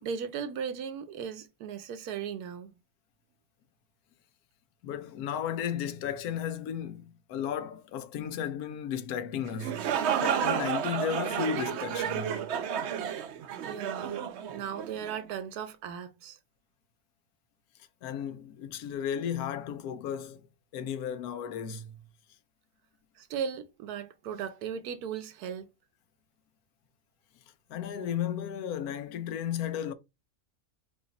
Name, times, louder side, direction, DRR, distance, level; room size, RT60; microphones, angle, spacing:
voice 1, 0.0-2.7 13.6-14.1 14.5-16.4 23.2-25.7, right 7 dB, 85° right, 1.2 m, -37 dB
voice 2, 4.8-12.4 18.0-20.4 20.7-22.0 27.7-29.9, left 8 dB, 80° left, 1.1 m, -34 dB
sound 1, 9.5-15.2, right 8 dB, 65° right, 0.7 m, -31 dB
5.0 x 2.6 x 4.0 m
omnidirectional pair, 1.6 m